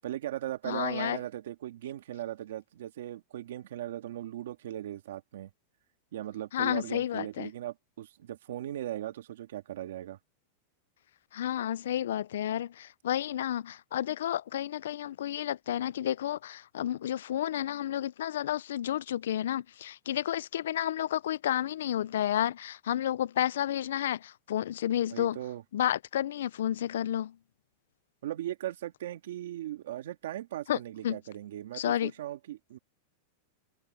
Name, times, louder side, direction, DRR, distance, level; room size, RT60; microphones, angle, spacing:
voice 1, 0.0-5.5 6.1-10.2 25.1-25.6 28.2-32.8, right 13 dB, 75° right, 2.0 m, -38 dB
voice 2, 0.7-1.2 6.5-7.5 11.3-25.4 25.7-27.3 30.7-30.8 31.0-31.2 31.7-32.1, left 11 dB, 85° left, 0.4 m, -31 dB
supercardioid pair, 170°, 0 cm